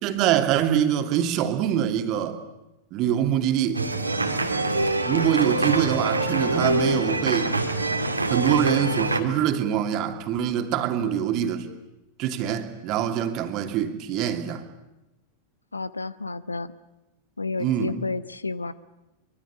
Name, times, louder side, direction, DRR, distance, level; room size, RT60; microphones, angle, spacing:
voice 1, 0.0-2.4 2.9-3.9 5.0-7.5 8.3-11.7 12.2-14.6 17.6-18.0, right 10 dB, 40° right, 6 dB, 2.7 m, -24 dB
sound 1, 3.7-9.2, right 2 dB, 85° right, 2.5 m, -25 dB
voice 2, 15.7-16.7 17.4-18.7, left 3 dB, 80° left, 17 dB, 0.9 m, -31 dB
24.5 x 23.5 x 8.5 m, 0.96 s
figure-of-eight pair, 90°, 0 cm